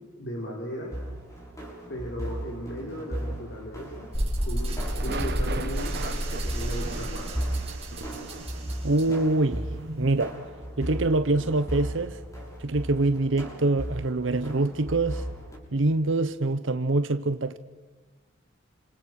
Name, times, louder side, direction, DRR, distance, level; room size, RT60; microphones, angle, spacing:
voice 1, 0.1-0.9 1.9-4.1 4.4-4.8 5.0-7.3, equal, 60° left, 5.0 m, -36 dB
sound 1, 0.9-15.6, equal, 15° left, 6.8 m, -36 dB
sound 2, 1.1-1.8 4.8-12.6 12.9-13.1, right 3 dB, 55° right, 1.6 m, -41 dB
sound 3, 4.1-10.2, right 1 dB, 30° right, 6.5 m, -32 dB
voice 2, 8.8-9.7 10.0-10.4 10.8-12.2 12.6-15.3 15.7-17.6, right 2 dB, 70° right, 0.9 m, -25 dB
29.5 x 27.0 x 6.5 m
head